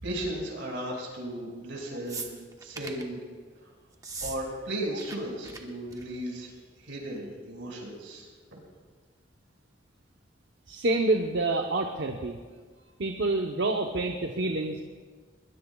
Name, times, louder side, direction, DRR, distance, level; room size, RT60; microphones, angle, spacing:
voice 1, 0.0-2.3 2.6-3.2 3.6-3.7 4.2-8.6, right 1 dB, 85° right, -1 dB, 5.6 m, -36 dB
sound 1, 2.1-3.1 3.9-4.4 4.6-5.2 5.4-5.6 5.9-6.2 7.2-7.3, right 4 dB, 20° right, 1.1 m, -39 dB
voice 2, 10.7-12.4 13.0-14.8, right 2 dB, 65° right, 3 dB, 0.9 m, -27 dB
21.5 x 20.5 x 2.4 m, 1.5 s
head